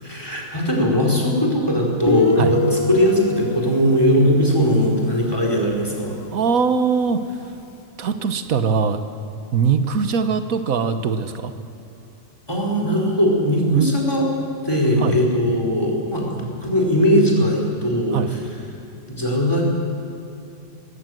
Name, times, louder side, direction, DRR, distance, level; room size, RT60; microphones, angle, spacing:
voice 1, 0.0-6.2 12.5-14.3 14.6-18.4 19.1-19.6, equal, 15° left, -1 dB, 4.5 m, -19 dB
Guitar, 2.1-5.6, left 3 dB, 35° left, 0.5 m, -24 dB
voice 2, 6.3-7.2 8.0-9.0 9.5-11.5 13.7-13.9 15.0-15.2 18.1-18.3, right 6 dB, 85° right, 9 dB, 1.5 m, -21 dB
19.5 x 17.0 x 7.8 m, 2.8 s
omnidirectional pair, 1.4 m